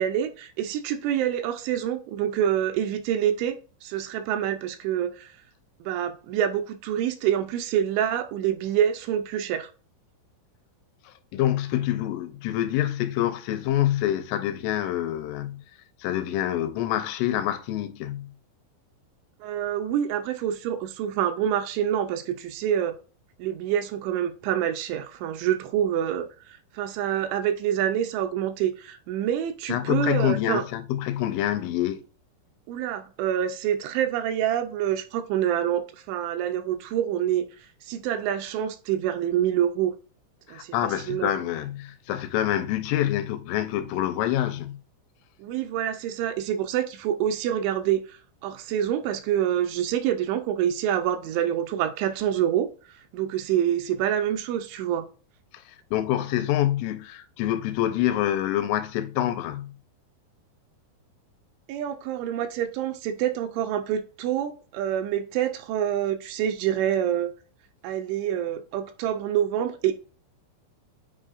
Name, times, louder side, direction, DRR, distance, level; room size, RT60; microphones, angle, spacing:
voice 1, 0.0-5.3 5.8-9.7 19.4-23.0 23.4-30.6 32.7-37.5 37.8-39.9 40.5-41.3 45.4-55.1 61.7-67.3 67.8-69.9, right 10 dB, 80° right, 2.9 m, -27 dB
voice 2, 11.3-15.6 16.0-18.3 29.7-32.0 40.5-44.8 55.7-59.7, left 12 dB, 85° left, 3.1 m, -26 dB
8.8 x 4.7 x 2.5 m
omnidirectional pair, 5.6 m